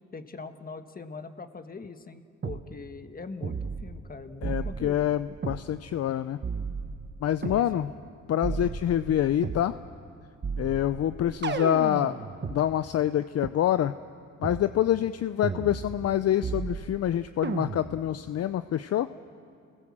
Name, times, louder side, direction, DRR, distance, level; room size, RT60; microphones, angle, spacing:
voice 1, 0.1-5.2 7.4-7.9 11.7-12.0, left 4 dB, 30° left, 8 dB, 1.6 m, -42 dB
sound 1, 2.4-2.6 3.4-4.1 4.4-5.6 6.4-7.6 8.4-9.7 10.4-12.6 13.4-13.5 14.4-14.7 15.4-16.1 16.4-17.1 17.4-18.1, right 5 dB, 35° right, 1.5 m, -34 dB
voice 2, 4.4-6.4 7.2-7.9 8.3-9.7 10.6-12.2 12.5-13.9 14.4-19.1, left 11 dB, 55° left, 12 dB, 0.6 m, -26 dB
30.0 x 19.5 x 7.5 m, 2.3 s
cardioid pair, 90°, 30 cm